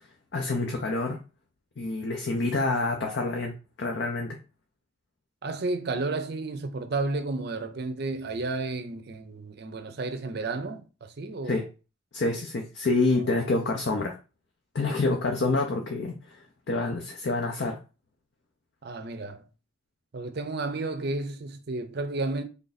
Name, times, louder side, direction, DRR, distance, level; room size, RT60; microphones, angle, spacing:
voice 1, 0.3-1.2 1.8-4.4 11.4-11.7 12.1-14.1 14.7-17.8, left 3 dB, 55° left, 0.5 m, -27 dB
voice 2, 5.4-11.6 18.8-19.4 20.1-22.4, right 3 dB, 50° right, 0.5 m, -32 dB
3.4 x 2.6 x 4.0 m
head